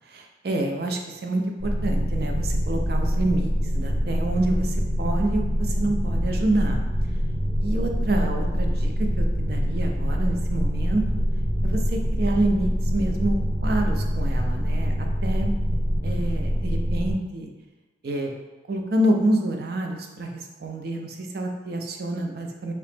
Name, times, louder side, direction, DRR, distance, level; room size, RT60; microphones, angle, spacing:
voice 1, 0.1-6.8 7.6-8.9 9.2-11.0 11.6-15.5 16.0-17.5 18.0-18.3 18.7-22.7, right 1 dB, 55° right, 2 dB, 0.4 m, -27 dB
sound 1, 1.6-17.1, equal, 80° right, 1.1 m, -24 dB
2.9 x 2.8 x 3.3 m, 1.2 s
head